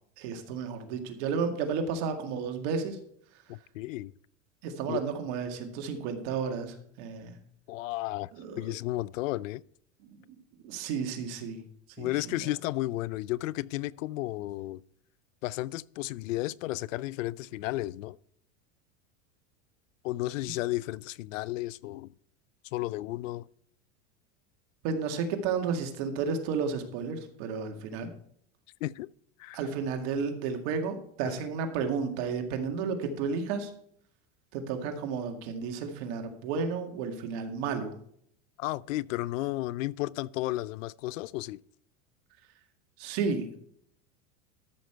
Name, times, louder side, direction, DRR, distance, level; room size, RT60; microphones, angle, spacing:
voice 1, 0.2-3.0 4.6-7.4 8.4-8.7 10.0-10.2 10.6-11.6 12.0-12.1 24.8-28.1 29.5-33.7 34.5-38.0 43.0-43.6, right 5 dB, 60° right, 2.1 m, -32 dB
voice 2, 3.5-4.1 4.9-5.0 7.7-8.3 8.6-9.6 12.0-14.8 15.4-18.2 20.0-22.1 22.7-23.5 28.8-29.1 29.4-29.6 38.6-41.6, left 17 dB, 90° left, 0.5 m, -33 dB
13.0 x 6.4 x 4.5 m
supercardioid pair, 130°, 37 cm